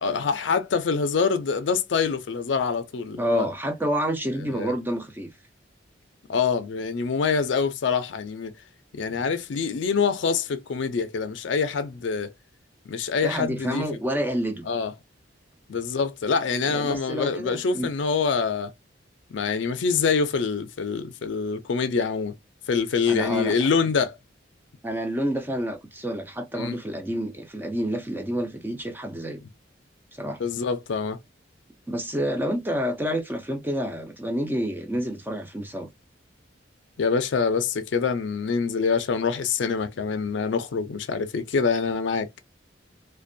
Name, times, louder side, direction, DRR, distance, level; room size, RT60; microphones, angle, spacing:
voice 1, 0.0-3.5 4.5-4.7 6.3-8.5 8.9-12.3 12.9-13.8 14.7-14.9 15.7-18.7 19.3-22.4 22.7-24.2 26.6-26.8 30.4-31.2 37.0-42.3, left 5 dB, 70° left, 0.4 m, -25 dB
voice 2, 3.2-5.3 13.2-14.7 16.6-17.9 23.1-23.6 24.8-29.4 30.1-30.4 31.9-35.9, equal, 10° right, 0.4 m, -28 dB
2.5 x 2.2 x 2.5 m
head